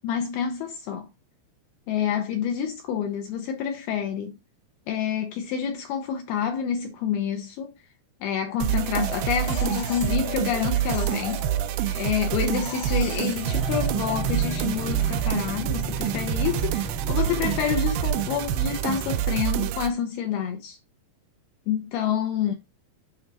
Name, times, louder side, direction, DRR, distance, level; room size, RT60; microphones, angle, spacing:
voice 1, 0.0-1.1 1.9-4.3 4.9-7.7 8.2-11.5 12.0-20.8 21.7-22.5, left 8 dB, 80° left, 2.3 m, -28 dB
sound 1, 8.6-19.9, right 13 dB, 85° right, 2.2 m, -27 dB
sound 2, 8.9-12.2 12.5-15.4, left 4 dB, 60° left, 1.7 m, -39 dB
sound 3, 13.5-19.2, equal, ahead, 0.7 m, -35 dB
7.2 x 4.3 x 3.9 m
omnidirectional pair, 5.1 m